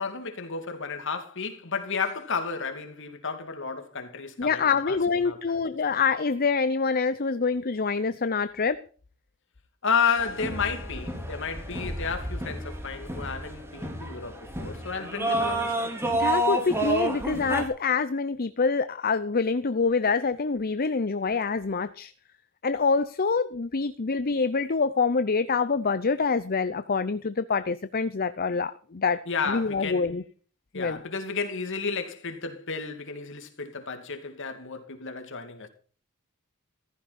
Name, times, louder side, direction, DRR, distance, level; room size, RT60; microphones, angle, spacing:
voice 1, 0.0-5.6 9.8-15.9 29.3-30.1 30.7-35.7, left 5 dB, 60° left, 2.7 m, -32 dB
voice 2, 4.4-8.8 16.1-22.1 22.6-29.2 29.5-30.2 30.7-31.0, left 4 dB, 45° left, 0.7 m, -26 dB
sound 1, 10.2-17.6, right 1 dB, 10° right, 3.9 m, -30 dB
15.0 x 15.0 x 4.3 m
head